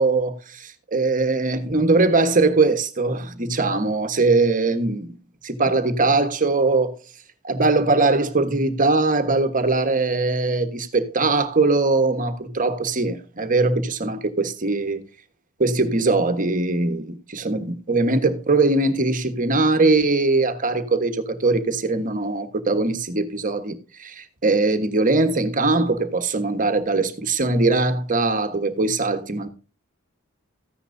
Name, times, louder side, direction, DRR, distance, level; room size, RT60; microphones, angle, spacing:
voice 1, 0.0-5.1 5.4-6.9 7.4-15.0 15.6-23.7 24.0-29.5, right 3 dB, 40° right, 1.4 m, -21 dB
14.5 x 10.0 x 2.7 m
head